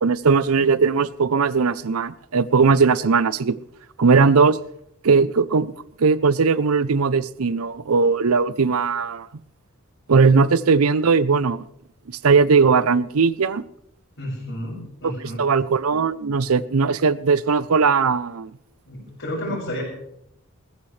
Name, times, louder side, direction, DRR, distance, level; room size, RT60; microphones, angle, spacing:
voice 1, 0.0-3.6 4.0-4.6 5.0-5.7 6.0-9.3 10.1-11.6 12.1-13.6 15.4-18.5, right 5 dB, 80° right, 0.6 m, -18 dB
voice 2, 14.2-15.4 18.9-19.8, equal, 60° left, 5.5 m, -31 dB
20.0 x 15.0 x 3.3 m
head